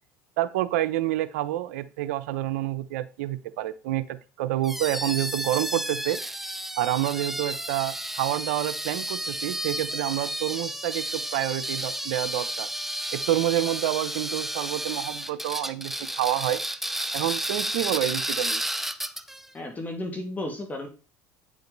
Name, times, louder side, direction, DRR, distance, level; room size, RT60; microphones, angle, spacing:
voice 1, 0.4-6.2 6.8-12.7 13.1-16.6 17.1-18.6, right 14 dB, 80° right, 13 dB, 0.8 m, -28 dB
sound 1, 4.6-19.5, right 1 dB, 5° right, 0.6 m, -32 dB
voice 2, 19.5-20.9, left 1 dB, 20° left, 4 dB, 2.4 m, -33 dB
9.2 x 5.1 x 4.0 m, 0.34 s
supercardioid pair, 95°, 8 cm